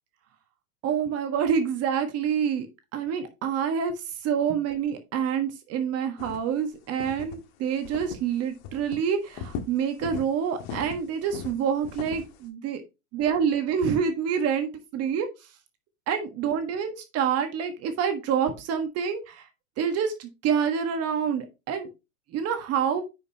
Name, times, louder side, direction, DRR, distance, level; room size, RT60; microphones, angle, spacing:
voice 1, 0.8-2.7 2.9-12.8 13.1-15.5 16.1-19.5 19.8-21.9 22.3-23.0, right 7 dB, 35° right, 7 dB, 1.5 m, -27 dB
sound 1, 6.2-6.6 7.0-7.4 7.9-8.3 8.6-9.0 9.3-10.3 10.6-12.4, left 6 dB, 50° left, 1.7 m, -37 dB
9.5 x 5.4 x 2.9 m, 0.26 s
hypercardioid pair, 110°, 40 cm